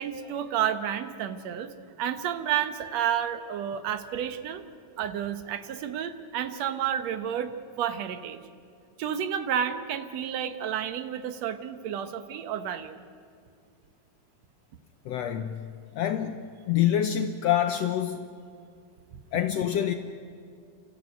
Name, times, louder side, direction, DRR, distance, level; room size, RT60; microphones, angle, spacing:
voice 1, 0.0-1.7 2.0-4.6 5.0-7.5 7.8-8.4 9.0-13.0, right 9 dB, 65° right, 2.1 m, -30 dB
voice 2, 15.0-15.7 15.9-18.3 19.3-19.9, left 10 dB, 70° left, 1.6 m, -26 dB
29.5 x 13.5 x 9.3 m
omnidirectional pair, 3.7 m